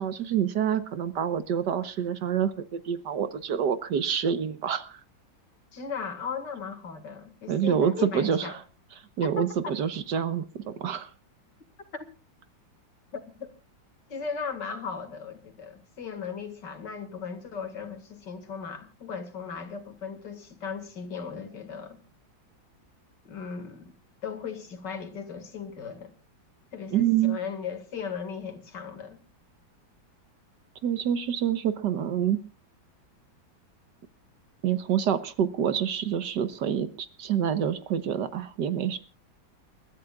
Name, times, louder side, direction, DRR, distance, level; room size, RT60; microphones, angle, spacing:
voice 1, 0.0-5.0 7.5-8.5 9.2-11.1 26.9-27.4 30.8-32.4 34.6-39.0, right 8 dB, 65° right, 1.6 m, -27 dB
voice 2, 5.7-8.6 9.2-9.7 11.9-12.1 13.1-13.5 14.1-22.0 23.2-23.9 24.2-26.1 26.7-29.2, left 6 dB, 65° left, 2.6 m, -37 dB
29.0 x 13.5 x 2.4 m
omnidirectional pair, 2.1 m